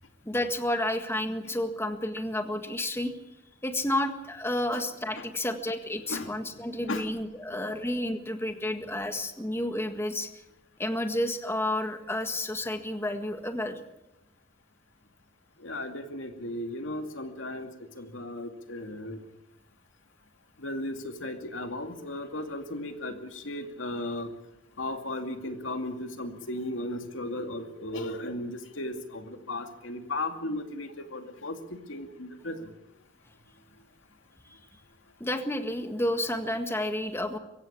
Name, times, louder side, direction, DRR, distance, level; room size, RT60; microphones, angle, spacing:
voice 1, 0.2-3.1 3.6-10.3 10.8-13.8 35.2-37.4, left 1 dB, 15° left, 7 dB, 1.7 m, -31 dB
voice 2, 15.6-17.7 18.0-19.2 20.6-24.3 24.8-32.7, left 1 dB, 90° left, 6 dB, 2.4 m, -36 dB
24.0 x 16.0 x 8.5 m, 0.91 s
head